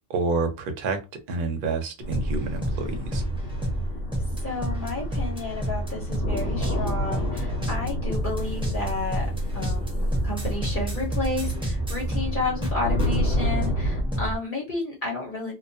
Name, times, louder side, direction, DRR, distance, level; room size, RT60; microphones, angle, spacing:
voice 1, 0.1-3.2, right 4 dB, 55° right, 0.7 m, -28 dB
sound 1, 2.0-14.0, equal, 80° left, 1.0 m, -30 dB
sound 2, 2.1-14.4, equal, 10° right, 0.3 m, -29 dB
voice 2, 4.4-9.3 9.5-15.5, left 3 dB, 50° left, 0.9 m, -31 dB
2.2 x 2.2 x 2.6 m
omnidirectional pair, 1.2 m